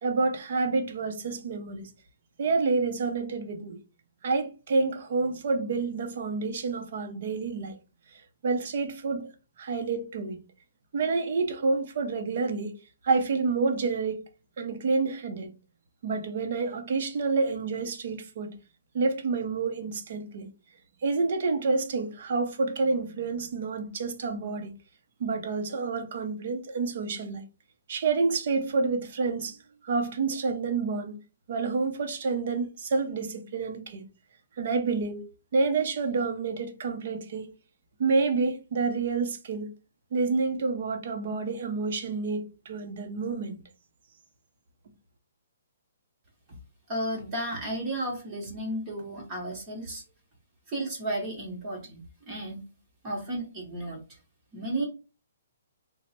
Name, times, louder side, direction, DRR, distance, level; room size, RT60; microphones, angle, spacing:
voice 1, 0.0-1.9 2.4-3.8 4.2-7.8 8.1-9.3 9.6-10.4 10.9-12.7 13.0-14.2 14.6-15.5 16.0-18.5 18.9-20.5 21.0-24.7 25.2-27.4 27.9-29.6 29.8-31.2 31.5-34.1 34.6-37.5 38.0-39.7 40.1-43.6, right 4 dB, 40° right, 0.6 m, -28 dB
voice 2, 46.9-50.0 50.7-52.6 53.0-54.2 54.5-54.9, right 1 dB, 15° right, 0.9 m, -33 dB
3.2 x 2.0 x 4.1 m
hypercardioid pair, 175°, 0 cm